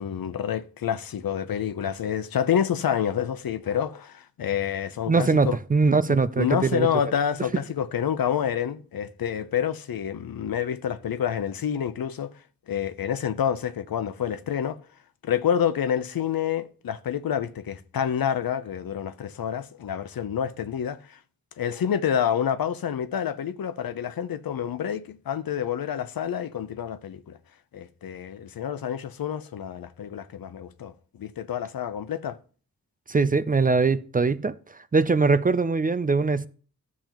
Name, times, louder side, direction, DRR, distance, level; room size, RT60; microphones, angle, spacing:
voice 1, 0.0-5.6 6.1-12.3 12.7-14.8 15.2-21.2 21.6-27.4 27.7-32.4, left 9 dB, 80° left, 0.7 m, -28 dB
voice 2, 5.1-6.9 33.1-34.5 34.9-36.5, right 4 dB, 25° right, 0.4 m, -22 dB
12.5 x 7.2 x 3.0 m
wide cardioid pair, 80°, 35 cm